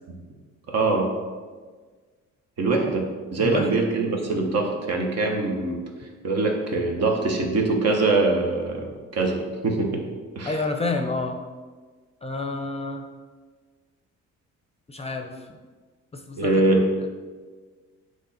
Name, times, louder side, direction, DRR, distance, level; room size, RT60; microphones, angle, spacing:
voice 1, 0.7-1.1 2.6-5.8 6.2-10.0 10.3-10.5 16.4-16.8, right 3 dB, 55° right, 1 dB, 1.2 m, -23 dB
voice 2, 3.4-3.8 10.4-11.4 12.2-13.0 14.9-15.5 16.1-17.1, left 3 dB, 20° left, 4 dB, 0.6 m, -29 dB
8.1 x 3.2 x 4.3 m, 1.5 s
cardioid pair, 90°, 30 cm